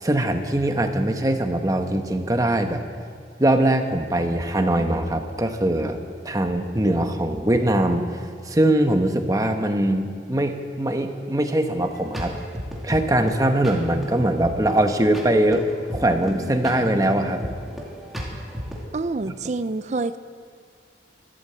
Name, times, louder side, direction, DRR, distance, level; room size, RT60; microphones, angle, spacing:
voice 1, 0.0-2.8 3.4-6.0 6.2-8.2 8.5-12.4 12.8-15.6 15.9-17.4 19.3-19.4, right 1 dB, 20° right, 5 dB, 1.0 m, -22 dB
sound 1, 11.8-18.8, equal, ahead, 2.4 m, -35 dB
voice 2, 18.9-20.2, right 3 dB, 40° right, 12 dB, 0.4 m, -27 dB
13.5 x 13.0 x 7.8 m, 2.1 s
head